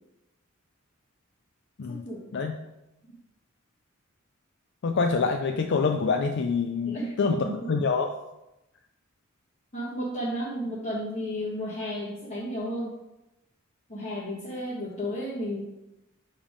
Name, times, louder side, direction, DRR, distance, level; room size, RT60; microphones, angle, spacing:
voice 1, 1.9-2.3 3.1-3.2 6.8-7.5 9.7-13.0 13.9-15.6, equal, 35° left, -9 dB, 1.5 m, -33 dB
voice 2, 4.8-8.1, left 4 dB, 55° left, 4 dB, 0.4 m, -26 dB
7.2 x 3.6 x 5.1 m, 0.92 s
head